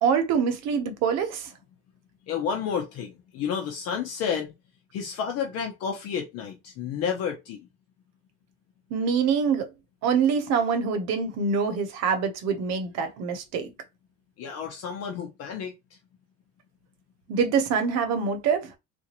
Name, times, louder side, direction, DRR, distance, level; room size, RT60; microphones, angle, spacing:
voice 1, 0.0-1.5 8.9-9.7 10.0-13.7 17.3-18.7, right 6 dB, 60° right, 1.0 m, -25 dB
voice 2, 2.3-4.5 4.9-7.7 14.4-15.7, left 7 dB, 55° left, 0.8 m, -31 dB
3.8 x 2.5 x 2.9 m
cardioid pair, 145°, 30 cm